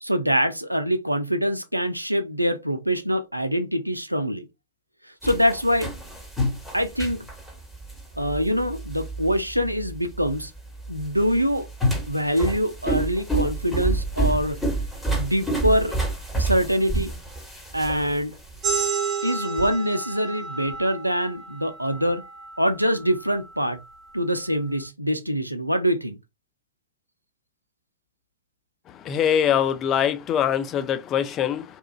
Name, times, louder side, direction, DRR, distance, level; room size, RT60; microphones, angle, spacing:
voice 1, 0.0-4.5 5.0-5.9 6.7-7.3 8.2-10.5 10.9-11.7 12.1-14.6 15.1-16.0 16.4-17.1 17.7-18.4 19.2-22.2 22.6-23.8 24.1-26.2, equal, 90° right, 0.3 m, -24 dB
sound 1, 5.2-18.9, right 2 dB, 10° left, 1.2 m, -29 dB
sound 2, 18.6-23.8, right 6 dB, 30° right, 0.8 m, -31 dB
voice 2, 29.1-31.6, left 9 dB, 30° left, 0.4 m, -23 dB
2.8 x 2.4 x 2.3 m
figure-of-eight pair, 90°, 0 cm